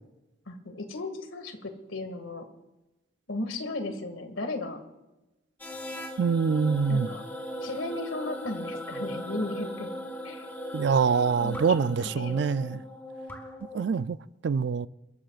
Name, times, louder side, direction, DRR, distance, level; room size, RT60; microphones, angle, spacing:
voice 1, 0.5-2.5 3.3-4.8 6.9-7.2 7.6-9.9 10.2-10.6 11.4-11.6 12.0-12.8, left 2 dB, 85° left, 2.1 m, -35 dB
sound 1, 5.6-14.0, equal, 10° left, 1.7 m, -38 dB
voice 2, 6.2-7.1 10.7-12.8 13.7-14.2 14.4-14.9, right 5 dB, 60° right, 0.4 m, -25 dB
28.0 x 14.0 x 2.4 m
head